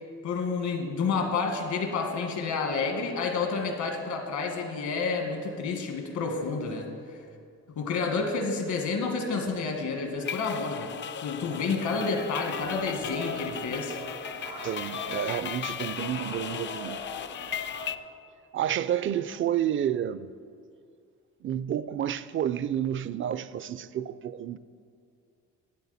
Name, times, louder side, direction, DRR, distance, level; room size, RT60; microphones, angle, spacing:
voice 1, 0.2-6.9 7.8-10.9 11.2-14.0, left 4 dB, 75° left, 1.6 m, -29 dB
sound 1, 10.2-18.0, left 9 dB, 40° left, 0.4 m, -37 dB
sound 2, 12.6-17.9, left 1 dB, 85° right, 2.1 m, -42 dB
voice 2, 14.6-17.0 18.5-20.3 21.4-24.6, right 10 dB, 45° right, 0.4 m, -30 dB
11.0 x 8.8 x 4.1 m
cardioid pair, 90°, 30 cm